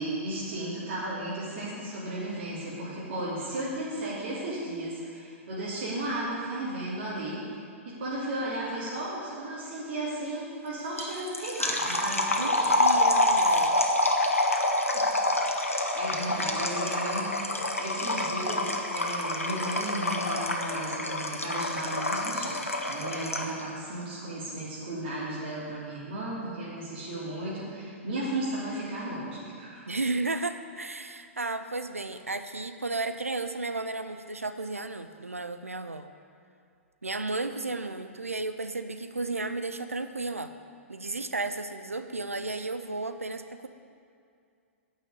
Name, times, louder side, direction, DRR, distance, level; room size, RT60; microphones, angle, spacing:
voice 1, 0.0-7.4 7.8-13.0 14.9-15.0 15.5-29.8, right 1 dB, 50° right, -8 dB, 3.2 m, -35 dB
sound 1, 11.0-23.6, left 1 dB, 90° left, 1.2 m, -27 dB
voice 2, 12.8-13.8 29.9-36.1 37.0-40.5 40.9-43.7, right 3 dB, 90° right, 9 dB, 0.6 m, -33 dB
9.3 x 6.4 x 8.5 m, 2.4 s
figure-of-eight pair, 110°, 7 cm